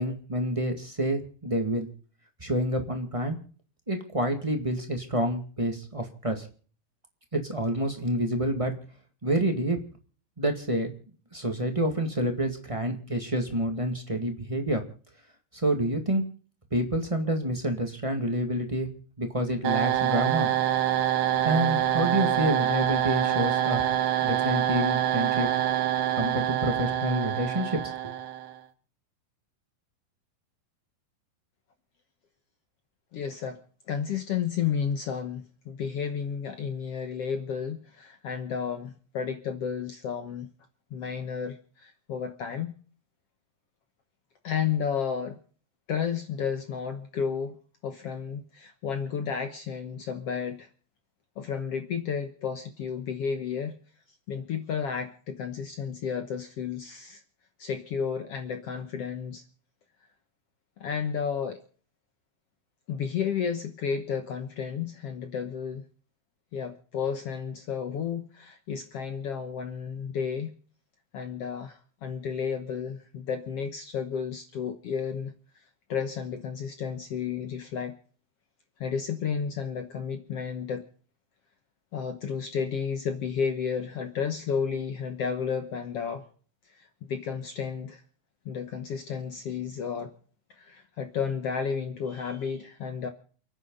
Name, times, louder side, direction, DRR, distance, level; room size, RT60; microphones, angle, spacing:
voice 1, 0.0-1.9 2.4-3.4 3.9-6.4 7.3-8.7 9.2-9.8 10.4-10.9 11.3-14.8 15.5-16.2 16.7-18.9 19.2-20.5 21.4-23.8 24.2-25.5 26.2-27.8 28.0-28.1, right 1 dB, 15° right, 4 dB, 1.2 m, -28 dB
sound 1, 19.6-28.6, right 11 dB, 65° right, 2.3 m, -26 dB
voice 2, 33.1-33.6 33.9-40.5 40.9-42.7 44.4-45.4 45.9-47.5 47.8-50.7 51.4-53.8 54.3-57.2 57.6-59.4 60.8-61.6 62.9-65.8 66.5-70.6 71.1-75.3 75.9-78.0 78.8-80.8 81.9-86.2 86.8-88.0 88.5-90.1 90.5-93.1, left 7 dB, 60° left, 7 dB, 1.7 m, -32 dB
29.5 x 9.9 x 3.9 m, 0.42 s
omnidirectional pair, 4.0 m